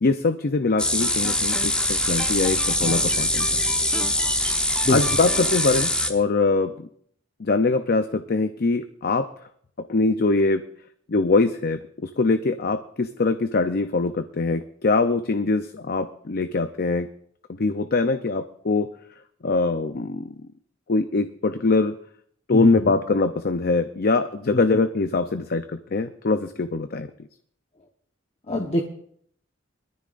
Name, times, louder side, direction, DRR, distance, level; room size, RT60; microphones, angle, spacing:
voice 1, 0.0-3.6 4.9-6.9 7.4-9.3 9.9-10.6 11.1-17.1 17.5-18.9 19.4-20.3 20.9-21.9 22.5-27.1, left 3 dB, 55° left, 9 dB, 0.6 m, -23 dB
sound 1, 0.8-6.1, left 1 dB, 5° left, 1.1 m, -23 dB
voice 2, 4.8-5.2 22.5-22.9 24.5-24.6 28.5-28.8, left 1 dB, 35° left, 1 dB, 1.0 m, -24 dB
22.0 x 14.0 x 2.5 m, 0.64 s
head